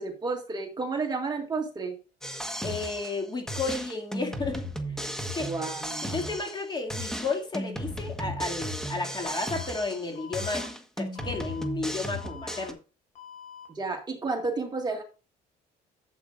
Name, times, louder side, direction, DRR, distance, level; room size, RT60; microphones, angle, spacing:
voice 1, 0.0-1.9 5.4-6.4 13.7-15.0, right 3 dB, 25° right, 2 dB, 1.9 m, -32 dB
sound 1, 2.2-3.2 3.5-6.6 6.9-10.1 10.3-12.7, equal, 5° left, 1.4 m, -35 dB
voice 2, 2.6-4.7 5.3-5.5 6.0-10.7 11.0-12.8, left 3 dB, 25° left, 2 dB, 2.4 m, -32 dB
Alarm, 9.2-9.7 10.2-10.7 11.2-11.7 12.2-12.7 13.2-13.7, left 8 dB, 45° left, 4.1 m, -45 dB
12.0 x 7.9 x 2.5 m, 0.33 s
cardioid pair, 110°, 17 cm